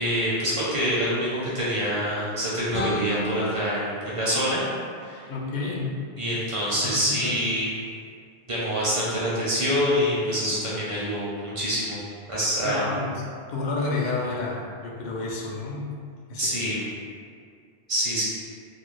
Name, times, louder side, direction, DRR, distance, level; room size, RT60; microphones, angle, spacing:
voice 1, 0.0-4.7 5.0-5.2 6.2-7.7 8.5-12.0 12.3-13.0 16.4-16.8 17.9-18.2, equal, 35° right, -8 dB, 0.7 m, -26 dB
sound 1, 2.7-5.7, right 1 dB, 85° left, 0.8 m, -34 dB
voice 2, 5.3-5.9 6.7-7.4 12.6-15.9 16.3-16.8, left 3 dB, 55° left, -2 dB, 0.6 m, -30 dB
2.5 x 2.3 x 3.1 m, 2.1 s
omnidirectional pair, 1.0 m